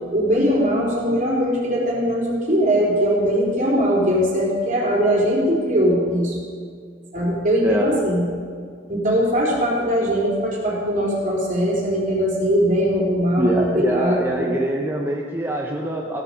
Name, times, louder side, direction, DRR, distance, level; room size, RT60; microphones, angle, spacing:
voice 1, 0.1-6.4 7.1-8.3 8.9-14.5, equal, 45° right, -5 dB, 4.1 m, -20 dB
voice 2, 13.4-16.2, right 1 dB, 10° right, -1 dB, 0.9 m, -24 dB
15.5 x 8.1 x 7.0 m, 2.1 s
head